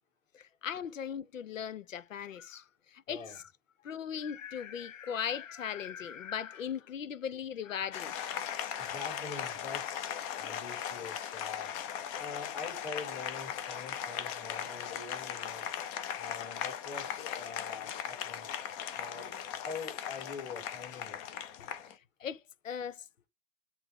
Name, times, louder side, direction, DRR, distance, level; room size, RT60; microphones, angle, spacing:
voice 1, 0.3-2.6 2.9-3.4 3.8-8.5 21.8-23.0, left 8 dB, 75° left, 0.7 m, -39 dB
voice 2, 3.1-3.4 8.8-11.7 12.2-15.7 16.2-18.5 18.9-21.2, left 5 dB, 50° left, 5.1 m, -44 dB
Applause, 7.9-21.9, left 9 dB, 25° left, 0.7 m, -38 dB
8.1 x 3.4 x 3.7 m
hypercardioid pair, 125°, 39 cm